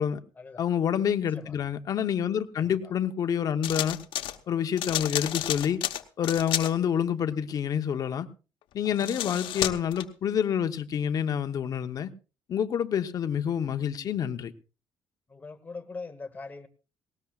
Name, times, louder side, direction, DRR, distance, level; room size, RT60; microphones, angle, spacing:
voice 1, 0.6-4.0 4.5-5.8 6.2-8.3 8.7-12.1 12.5-14.5, left 8 dB, 45° left, 8 dB, 0.9 m, -28 dB
voice 2, 1.3-1.6 2.5-2.9 8.9-9.1 15.3-16.7, left 4 dB, 20° left, 8 dB, 1.1 m, -42 dB
sound 1, 3.6-4.4 4.8-6.7 8.8-10.0, left 13 dB, 80° left, 1.0 m, -31 dB
19.0 x 18.0 x 2.4 m, 0.33 s
cardioid pair, 155°, 9 cm